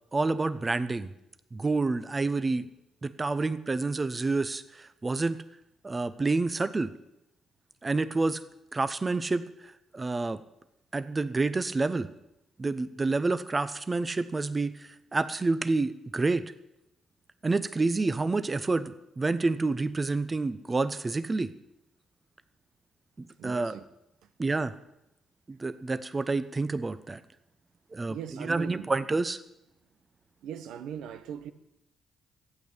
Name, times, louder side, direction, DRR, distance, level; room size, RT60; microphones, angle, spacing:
voice 1, 0.1-1.1 1.5-2.7 3.0-5.4 5.8-6.9 7.8-8.4 8.7-9.4 9.9-10.4 10.9-12.1 12.6-16.4 17.4-21.5 23.2-23.8 24.4-24.7 25.5-27.2 27.9-29.4, right 3 dB, 25° right, 0.8 m, -28 dB
voice 2, 23.4-23.8 28.1-28.9 30.4-31.5, right 9 dB, 85° right, 0.9 m, -39 dB
12.5 x 8.8 x 8.2 m
cardioid pair, 75°, 0 cm